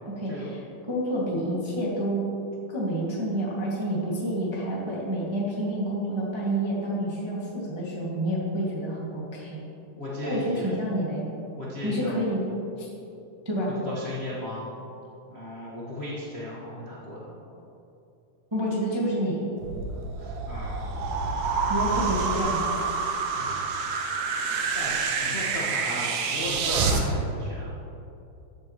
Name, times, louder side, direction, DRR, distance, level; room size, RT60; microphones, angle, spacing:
voice 1, 0.0-2.2 2.7-9.6 10.2-11.3 11.8-12.4 12.8-12.9 13.4-13.7 18.5-19.4 21.7-22.6, right 1 dB, 20° right, -6 dB, 0.7 m, -29 dB
voice 2, 9.9-10.7 11.5-12.2 13.8-14.7 15.3-17.4 20.2-21.7 23.3-23.6 24.4-27.7, left 1 dB, 45° left, -8 dB, 0.7 m, -36 dB
sound 1, 19.6-27.0, right 4 dB, 85° right, 2.5 m, -28 dB
14.5 x 8.4 x 3.1 m, 2.7 s
omnidirectional pair, 3.8 m